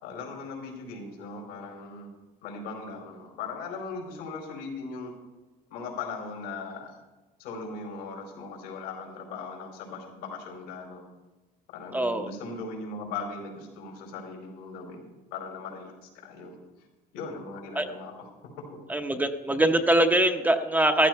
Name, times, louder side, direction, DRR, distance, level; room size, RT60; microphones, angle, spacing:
voice 1, 0.0-2.1 2.4-5.1 5.7-6.9 7.4-11.0 11.7-15.0 15.3-16.6 17.1-18.1, left 4 dB, 85° left, 1 dB, 4.6 m, -39 dB
voice 2, 11.9-12.3 17.8-17.9 18.9-21.1, right 1 dB, 10° right, 6 dB, 0.8 m, -23 dB
14.5 x 13.0 x 4.6 m, 1.1 s
cardioid pair, 120°, 18 cm